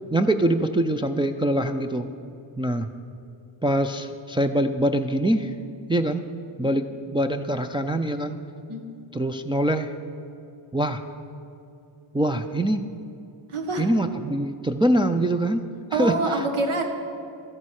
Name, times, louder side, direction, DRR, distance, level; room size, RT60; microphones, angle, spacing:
voice 1, 0.1-2.1 2.6-2.9 3.6-5.5 5.9-6.3 6.6-8.4 9.1-9.9 10.7-11.0 12.1-12.8 13.8-15.6 15.9-16.4, right 1 dB, 10° right, 4 dB, 0.3 m, -24 dB
voice 2, 13.5-13.9 15.9-16.8, right 3 dB, 85° right, 4 dB, 1.7 m, -26 dB
13.5 x 9.6 x 6.3 m, 2.7 s
wide cardioid pair, 135°, 48 cm